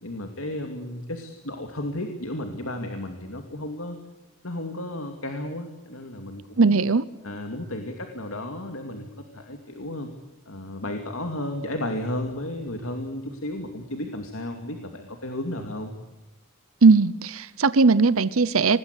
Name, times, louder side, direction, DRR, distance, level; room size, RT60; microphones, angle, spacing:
voice 1, 0.0-4.0 4.4-6.8 7.2-10.1 10.5-15.9, left 1 dB, 80° left, 4 dB, 2.6 m, -33 dB
voice 2, 6.6-7.0 16.8-18.8, right 4 dB, 85° right, 16 dB, 0.8 m, -18 dB
26.0 x 19.5 x 8.3 m, 1.0 s
head